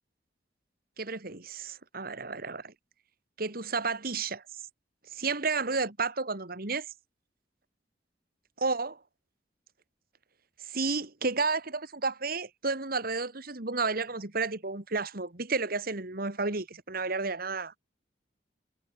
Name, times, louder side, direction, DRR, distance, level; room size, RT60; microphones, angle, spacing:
voice 1, 1.0-2.7 3.4-4.4 5.1-6.9 8.6-9.0 10.6-17.8, right 4 dB, 60° right, 2.6 m, -32 dB
head